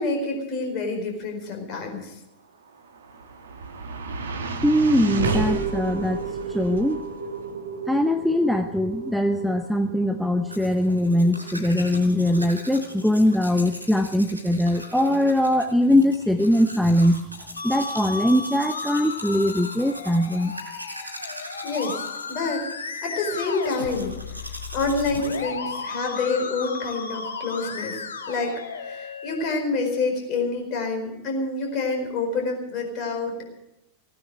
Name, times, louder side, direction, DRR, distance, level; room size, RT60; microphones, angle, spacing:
voice 1, 0.0-2.1 21.6-22.0 22.3-22.6 23.0-24.1 24.7-28.0 28.3-33.5, left 3 dB, 40° left, 2 dB, 4.7 m, -27 dB
sound 1, 2.7-15.0, right 4 dB, 65° right, 1.3 m, -33 dB
voice 2, 4.6-6.2 6.5-7.1 7.9-17.2 17.6-20.5, left 1 dB, ahead, 7 dB, 0.7 m, -21 dB
Domestic sounds home sounds, 10.5-25.4, equal, 90° left, 3.8 m, -41 dB
Musical instrument, 17.6-29.5, left 4 dB, 70° left, 1.2 m, -34 dB
17.0 x 9.7 x 7.8 m, 0.88 s
figure-of-eight pair, 90°, 0 cm